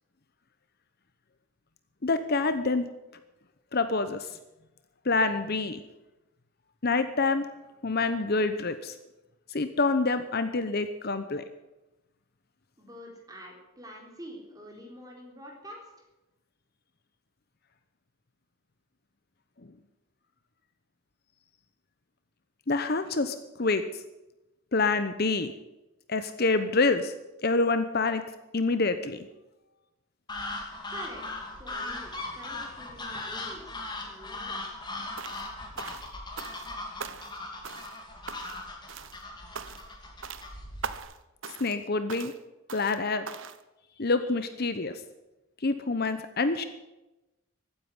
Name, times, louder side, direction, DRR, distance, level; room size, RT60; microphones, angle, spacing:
voice 1, 2.0-2.8 3.7-4.3 5.0-5.8 6.8-7.5 7.8-8.9 9.5-11.4 22.7-24.0 24.7-25.5 26.1-27.1 27.4-28.2 28.5-29.3 41.6-42.3 42.7-43.3 44.0-44.9 45.6-46.6, left 3 dB, 45° left, 10 dB, 0.9 m, -27 dB
voice 2, 12.8-16.0 30.9-31.3 31.6-34.8, equal, 15° right, 0 dB, 3.9 m, -46 dB
sound 1, 30.3-41.0, left 2 dB, 20° left, 2.7 m, -39 dB
sound 2, 35.2-35.5 35.8-36.7 37.0-37.4 37.6-38.0 38.3-38.6 38.9-39.2 39.5-39.9 40.2-40.5 40.8-41.2 41.4-41.8 42.1-42.4 42.7-43.0 43.3-43.6, right 6 dB, 60° right, 0.9 m, -40 dB
15.0 x 9.8 x 9.6 m, 1.0 s
head